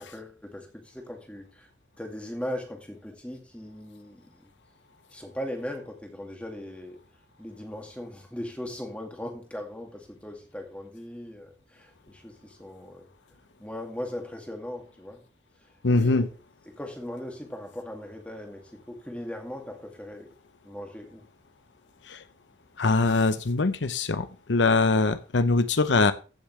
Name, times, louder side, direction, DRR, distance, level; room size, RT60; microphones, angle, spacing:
voice 1, 0.0-1.7 2.0-4.5 5.1-7.0 7.4-13.1 13.6-15.2 15.9-16.3 16.8-20.3 20.6-21.2, left 1 dB, 5° left, 2 dB, 2.3 m, -39 dB
voice 2, 15.8-16.3 22.1-22.2 22.8-26.1, left 3 dB, 85° left, 12 dB, 0.8 m, -23 dB
15.0 x 7.1 x 3.2 m, 0.34 s
head